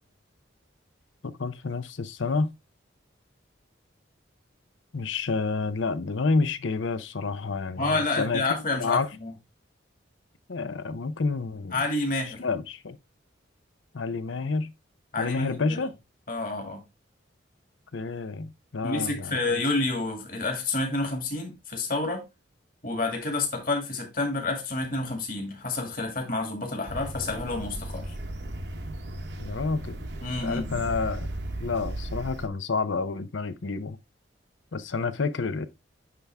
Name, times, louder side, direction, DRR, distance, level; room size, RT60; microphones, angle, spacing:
voice 1, 1.2-2.5 4.9-9.1 10.5-11.8 12.4-13.0 13.9-14.7 15.2-15.9 17.9-19.6 29.4-30.1 30.4-31.3 31.6-34.0 34.7-35.7, left 4 dB, 80° left, 0.6 m, -29 dB
voice 2, 7.8-9.3 11.7-12.4 15.1-15.8 16.3-16.8 18.8-22.3 22.8-28.2 30.2-30.9, left 2 dB, 45° left, 2.1 m, -29 dB
sound 1, 26.9-32.5, right 1 dB, 60° right, 0.9 m, -36 dB
9.7 x 3.5 x 3.4 m
head